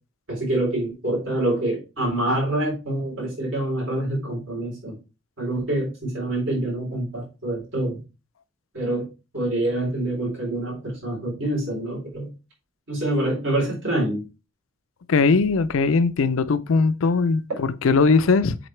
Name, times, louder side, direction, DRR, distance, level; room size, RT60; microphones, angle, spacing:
voice 1, 0.3-5.0 5.4-8.0 8.7-9.1 9.3-12.3 12.9-14.2, right 1 dB, 70° right, 4.0 m, -26 dB
voice 2, 15.1-18.6, left 4 dB, 80° left, 0.5 m, -20 dB
7.8 x 3.9 x 3.2 m
head